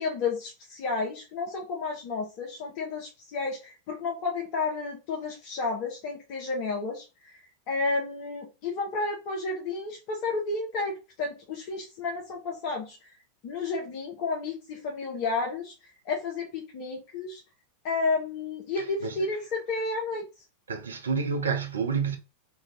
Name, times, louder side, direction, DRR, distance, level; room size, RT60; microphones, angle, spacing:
voice 1, 0.0-13.1 13.4-17.4 17.8-20.3, left 3 dB, 45° left, 0.6 m, -32 dB
voice 2, 18.8-19.3 20.7-22.2, right 5 dB, 70° right, 0.5 m, -29 dB
2.6 x 2.2 x 3.1 m
figure-of-eight pair, 90°, 0 cm